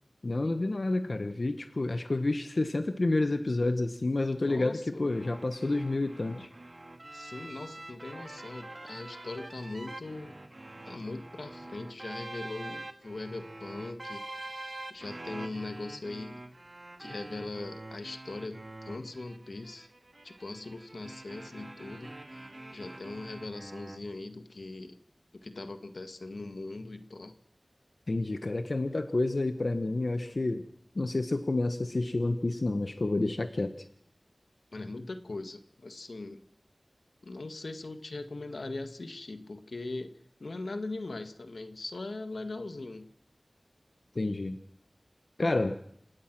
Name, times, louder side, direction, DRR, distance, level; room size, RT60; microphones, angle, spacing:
voice 1, 0.2-6.5 28.1-30.6 30.9-33.9 44.1-44.6 45.4-45.8, left 2 dB, 60° left, 8 dB, 1.2 m, -29 dB
voice 2, 4.4-5.1 7.1-10.4 10.9-16.4 17.0-19.9 20.2-22.1 22.7-25.0 25.3-27.3 34.7-36.4 37.2-40.1 40.4-43.1, left 2 dB, 80° left, 8 dB, 1.6 m, -40 dB
sound 1, 5.1-24.0, right 2 dB, 45° right, 2.3 m, -45 dB
28.0 x 17.0 x 6.1 m, 0.72 s
wide cardioid pair, 45°, 0 cm